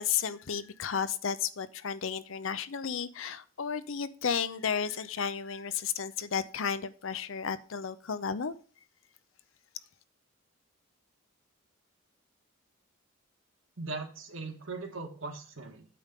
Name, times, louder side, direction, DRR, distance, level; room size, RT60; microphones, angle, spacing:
voice 1, 0.0-8.5, left 7 dB, 65° left, 14 dB, 0.6 m, -33 dB
voice 2, 13.8-16.0, right 3 dB, 70° right, 3 dB, 1.7 m, -39 dB
8.5 x 3.7 x 6.7 m, 0.41 s
head